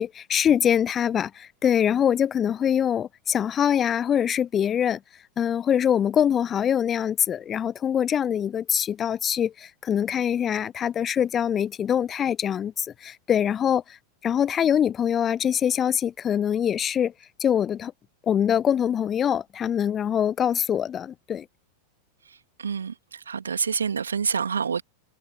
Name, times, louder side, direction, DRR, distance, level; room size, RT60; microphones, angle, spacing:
voice 1, 0.0-5.0 5.4-14.0 14.2-17.1 17.4-17.9 18.2-21.5, left 9 dB, 25° left, 0.5 m, -24 dB
voice 2, 22.3-24.8, right 6 dB, 70° right, 2.2 m, -28 dB
figure-of-eight pair, 90°, 0 cm